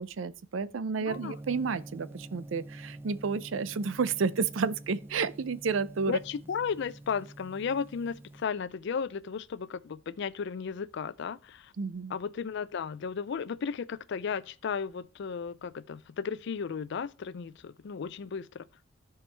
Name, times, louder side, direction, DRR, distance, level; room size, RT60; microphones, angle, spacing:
voice 1, 0.0-6.2 11.8-12.1, right 5 dB, 70° right, 0.5 m, -31 dB
voice 2, 1.0-1.4 6.1-11.7 12.1-18.7, left 6 dB, 60° left, 0.4 m, -34 dB
Gong, 1.1-8.5, right 1 dB, 10° right, 0.4 m, -47 dB
13.5 x 4.6 x 3.3 m
head